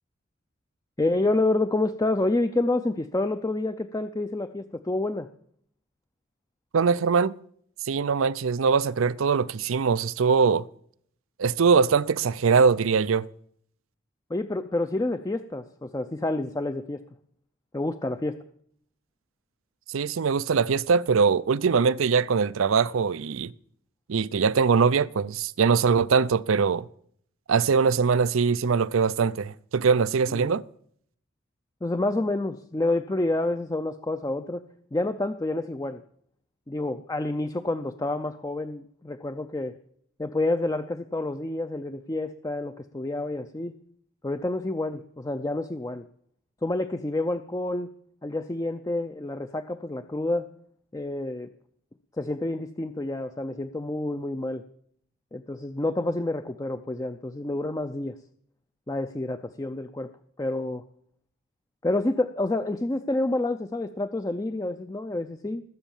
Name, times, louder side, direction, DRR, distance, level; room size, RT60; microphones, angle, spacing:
voice 1, 1.0-5.3 14.3-17.0 17.7-18.4 30.3-30.5 31.8-34.6 34.9-36.0 36.7-39.7 40.2-43.7 44.2-46.0 46.6-47.9 48.2-50.5 50.9-51.5 52.2-54.6 55.3-58.1 58.9-60.1 60.4-60.8 61.8-65.6, left 2 dB, 15° left, 0.5 m, -28 dB
voice 2, 6.7-7.3 7.8-10.7 11.4-13.3 19.9-23.5 24.1-26.9 27.5-30.6, right 5 dB, 75° right, 0.5 m, -22 dB
20.5 x 8.0 x 7.2 m
head